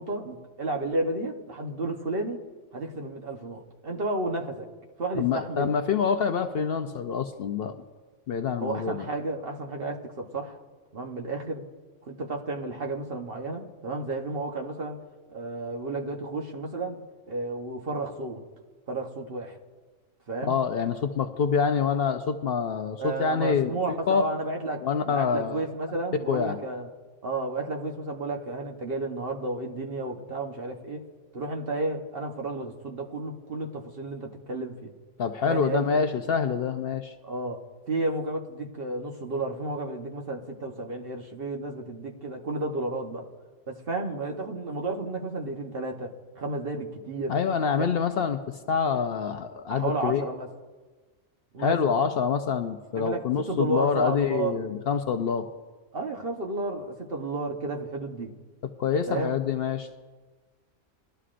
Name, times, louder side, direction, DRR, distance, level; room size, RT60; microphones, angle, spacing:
voice 1, 0.0-2.4 2.7-4.7 5.0-5.7 8.6-10.6 10.9-11.6 12.0-15.0 15.3-17.0 17.3-18.4 18.9-19.6 20.3-20.6 23.0-26.9 27.2-31.0 31.3-34.9 35.5-35.9 37.2-37.6 37.9-43.2 43.7-46.1 46.4-47.4 47.8-47.9 49.7-50.5 51.5-51.8 52.9-53.2 53.5-54.6 55.9-58.3 59.1-59.3, right 2 dB, 50° right, 2 dB, 1.2 m, -32 dB
voice 2, 5.2-7.8 8.3-9.1 20.5-24.3 24.8-25.6 26.3-26.6 35.2-37.1 47.3-48.4 48.7-50.3 51.6-55.5 58.8-60.0, left 6 dB, 60° left, 8 dB, 0.7 m, -26 dB
20.5 x 12.5 x 2.5 m, 1.4 s
omnidirectional pair, 1.3 m